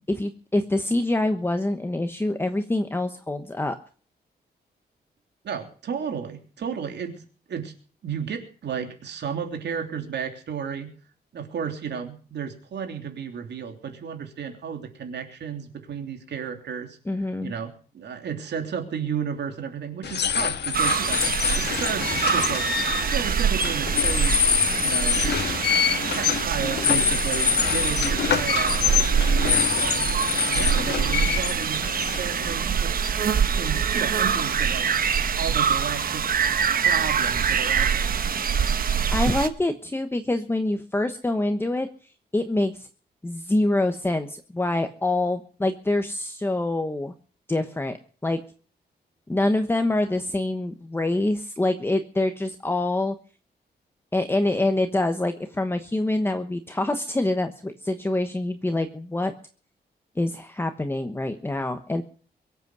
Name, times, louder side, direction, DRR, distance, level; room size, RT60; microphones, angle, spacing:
voice 1, 0.1-3.8 17.1-17.5 39.1-41.9 42.3-42.9 43.2-47.1 47.5-48.0 48.2-48.4 49.3-53.1 54.1-59.3 60.2-62.0, left 2 dB, 15° left, 7 dB, 1.1 m, -25 dB
voice 2, 5.4-7.7 8.0-10.9 11.3-17.0 17.4-21.2 21.6-22.7 23.1-24.5 24.7-25.2 25.7-28.8 29.4-30.1 30.4-31.8 32.2-33.0 33.5-35.0 35.4-36.2 36.8-38.1, right 7 dB, 85° right, 4 dB, 3.2 m, -33 dB
sound 1, 20.0-32.8, left 8 dB, 80° left, 1.4 m, -25 dB
sound 2, 20.7-39.5, right 7 dB, 55° right, 1.1 m, -24 dB
23.0 x 8.3 x 6.1 m, 0.42 s
wide cardioid pair, 130°, 17 cm